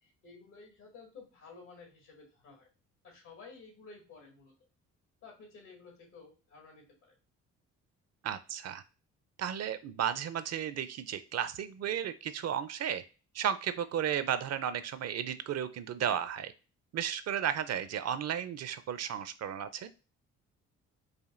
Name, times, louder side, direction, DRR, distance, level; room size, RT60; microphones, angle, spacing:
voice 1, 0.0-2.7 3.0-4.5 5.2-7.2, left 4 dB, 80° left, 0 dB, 1.9 m, -53 dB
voice 2, 8.2-8.8 9.4-13.0 13.3-16.5 16.9-19.9, right 9 dB, 55° right, 12 dB, 0.5 m, -34 dB
5.0 x 2.5 x 2.4 m, 0.33 s
supercardioid pair, 60°, 32 cm